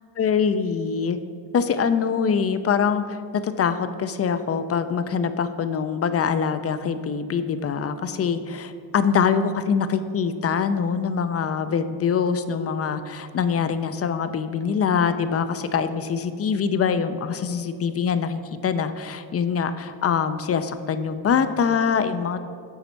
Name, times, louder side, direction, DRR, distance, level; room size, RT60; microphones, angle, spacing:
voice 1, 0.2-1.2 1.5-22.4, left 6 dB, 35° left, 11 dB, 0.4 m, -24 dB
8.0 x 4.1 x 4.5 m, 2.3 s
supercardioid pair, 60°, 46 cm